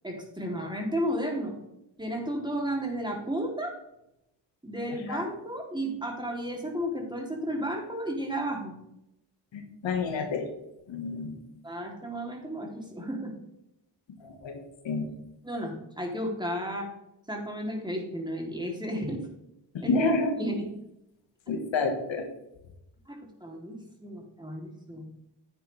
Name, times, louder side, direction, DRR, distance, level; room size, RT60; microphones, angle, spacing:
voice 1, 0.0-1.6 2.0-3.8 4.6-8.7 11.6-13.3 15.4-16.9 17.3-19.2 19.8-19.9 20.4-20.7 23.1-25.1, equal, 10° right, 0 dB, 3.3 m, -33 dB
voice 2, 9.5-10.5 10.9-11.4 14.2-15.1 19.7-20.3 21.5-22.2, left 3 dB, 80° left, 4 dB, 1.8 m, -29 dB
10.0 x 8.9 x 3.5 m, 0.85 s
cardioid pair, 60°, 45 cm